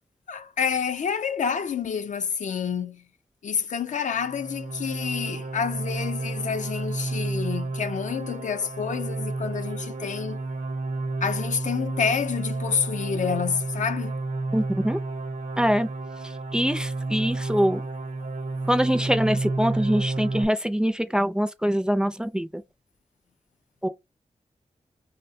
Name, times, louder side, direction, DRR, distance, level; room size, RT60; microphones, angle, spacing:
voice 1, 0.3-3.1 3.4-10.4 11.2-14.2, left 7 dB, 70° left, 0.5 m, -28 dB
sound 1, 4.2-20.4, right 3 dB, 75° right, 0.8 m, -31 dB
voice 2, 14.5-15.0 15.6-15.9 16.5-17.8 18.7-22.5 23.8-23.9, equal, 5° right, 0.4 m, -24 dB
5.4 x 2.1 x 2.6 m
wide cardioid pair, 120°, 13 cm